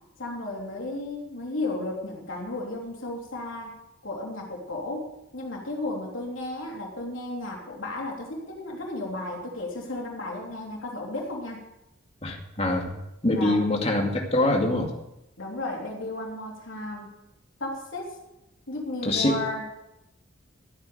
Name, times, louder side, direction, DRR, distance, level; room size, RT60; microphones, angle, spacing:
voice 1, 0.2-3.8 4.0-11.6 13.3-13.6 15.4-17.1 17.6-18.2 18.7-19.6, left 2 dB, 80° left, -1 dB, 3.3 m, -34 dB
voice 2, 12.2-12.9 13.2-14.9 19.0-19.3, left 1 dB, 30° left, 1 dB, 2.4 m, -24 dB
14.0 x 9.0 x 6.8 m, 0.88 s
head